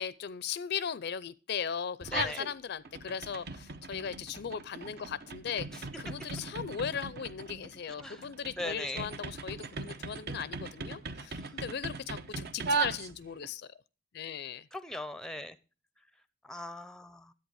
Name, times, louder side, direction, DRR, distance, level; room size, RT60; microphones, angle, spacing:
voice 1, 0.0-13.7 14.1-14.7, left 7 dB, 55° left, 0.4 m, -38 dB
sound 1, 2.0-2.5 2.8-13.5, right 4 dB, 55° right, 0.7 m, -38 dB
voice 2, 8.6-9.1 14.7-15.6 16.4-17.3, left 1 dB, 5° left, 0.5 m, -39 dB
10.5 x 8.3 x 4.7 m
head